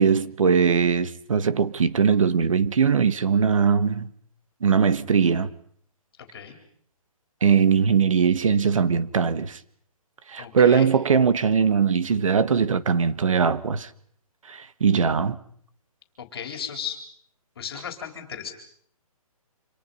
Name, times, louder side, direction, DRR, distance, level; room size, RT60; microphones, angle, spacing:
voice 1, 0.0-4.1 4.6-5.5 7.4-9.6 10.3-13.9 14.5-15.4, right 6 dB, 60° right, 1.7 m, -20 dB
voice 2, 10.4-10.9 16.2-17.0 17.6-18.5, left 8 dB, 40° left, 4.3 m, -35 dB
28.5 x 26.5 x 5.7 m
hypercardioid pair, 175°, 19 cm